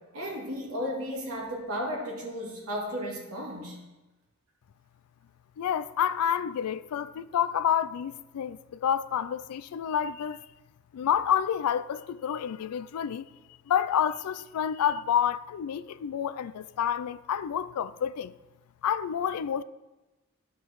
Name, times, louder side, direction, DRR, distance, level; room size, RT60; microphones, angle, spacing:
voice 1, 0.1-3.8, equal, 80° right, 2.3 m, -34 dB
voice 2, 5.6-10.4 10.9-13.3 13.7-18.3 18.8-19.6, left 9 dB, 85° left, 0.3 m, -29 dB
12.0 x 5.6 x 3.1 m
head